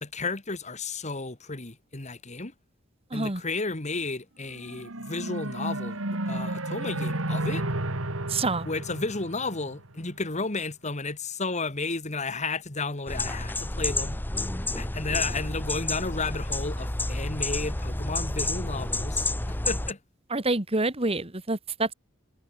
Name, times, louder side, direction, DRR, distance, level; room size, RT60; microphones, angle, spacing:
voice 1, 0.0-2.5 3.1-7.6 8.7-14.2 14.8-20.0, left 3 dB, 35° left, 2.0 m, -33 dB
voice 2, 3.1-3.4 8.3-8.7 20.3-21.9, right 2 dB, 30° right, 2.2 m, -27 dB
sound 1, 4.5-10.0, right 1 dB, 85° right, 3.0 m, -32 dB
sound 2, 13.1-19.9, left 2 dB, 10° left, 0.7 m, -30 dB
head